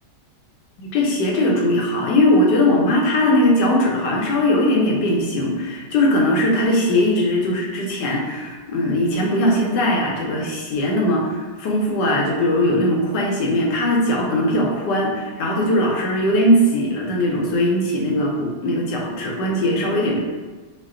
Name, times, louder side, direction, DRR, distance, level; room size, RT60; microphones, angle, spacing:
voice 1, 0.8-20.2, left 1 dB, 80° left, -1 dB, 1.4 m, -20 dB
4.4 x 2.2 x 3.6 m, 1.3 s
omnidirectional pair, 1.9 m